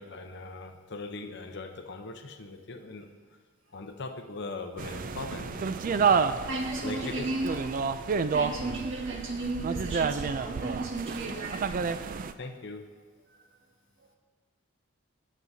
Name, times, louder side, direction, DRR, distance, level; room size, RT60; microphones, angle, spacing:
voice 1, 0.0-3.1 3.7-6.3 6.8-7.3 12.4-12.9, left 3 dB, 55° left, 6 dB, 0.7 m, -40 dB
sound 1, 4.8-12.3, right 5 dB, 40° right, 0.3 m, -30 dB
voice 2, 6.5-7.7 8.3-11.7 13.3-13.4, right 2 dB, 60° right, 0 dB, 1.6 m, -34 dB
17.5 x 7.3 x 2.7 m, 1.4 s
head